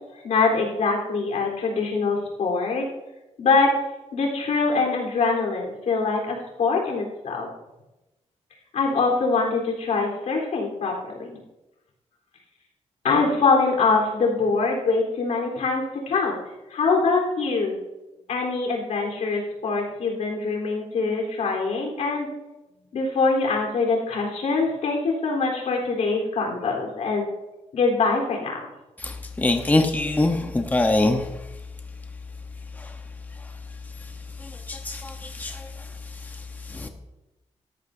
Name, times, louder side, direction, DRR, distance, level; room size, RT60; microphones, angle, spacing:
voice 1, 0.2-2.9 3.4-3.7 4.1-7.5 8.7-11.4 13.0-16.4 16.7-17.7 18.3-22.3 22.9-27.3 27.7-28.7, left 4 dB, 85° left, -1 dB, 3.8 m, -23 dB
voice 2, 29.0-31.4 32.8-33.0 34.4-36.9, left 2 dB, 15° left, 4 dB, 1.0 m, -25 dB
17.5 x 13.5 x 2.7 m, 1.0 s
wide cardioid pair, 130°, 12 cm